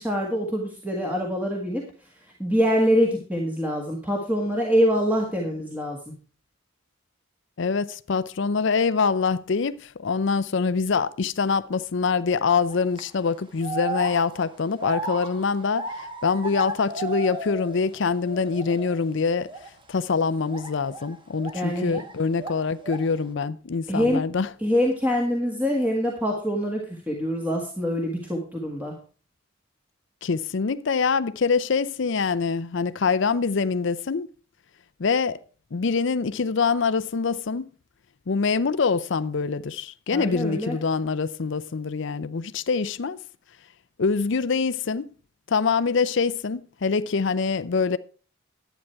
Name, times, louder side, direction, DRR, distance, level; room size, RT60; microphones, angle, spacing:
voice 1, 0.0-1.8 2.4-6.1 21.5-22.0 23.9-24.2 24.6-28.9 40.1-40.8, equal, 10° right, 1.7 m, -25 dB
voice 2, 7.6-19.5 19.9-24.5 30.2-34.3 35.0-35.4 35.7-37.7 38.3-43.2 44.0-45.1 45.5-48.0, left 5 dB, 65° left, 0.5 m, -25 dB
sound 1, 12.7-13.0 13.6-18.0 18.2-19.0 19.4-19.7 20.5-22.1 22.4-23.2, right 2 dB, 25° right, 1.2 m, -35 dB
11.0 x 9.1 x 4.6 m
head